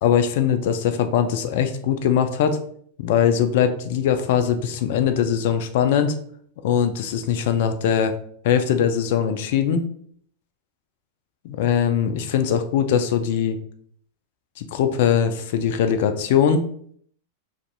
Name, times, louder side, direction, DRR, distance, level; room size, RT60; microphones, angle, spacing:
voice 1, 0.0-2.6 3.0-6.1 6.6-8.1 8.4-9.9 11.4-13.6 14.6-16.7, left 8 dB, 60° left, 8 dB, 0.3 m, -21 dB
2.5 x 2.4 x 2.3 m, 0.62 s
hypercardioid pair, 100°, 0 cm